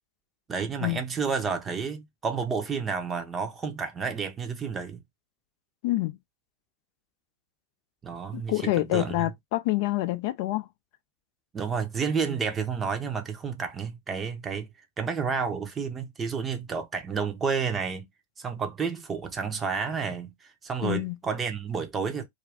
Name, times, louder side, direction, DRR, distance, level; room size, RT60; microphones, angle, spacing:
voice 1, 0.5-5.0 8.0-9.3 11.5-14.7 15.0-18.1 18.4-22.3, right 5 dB, 20° right, 0.7 m, -30 dB
voice 2, 5.8-6.2 8.3-10.7 20.8-21.2, left 17 dB, 60° left, 0.3 m, -27 dB
2.5 x 2.3 x 3.3 m
hypercardioid pair, 100°, 0 cm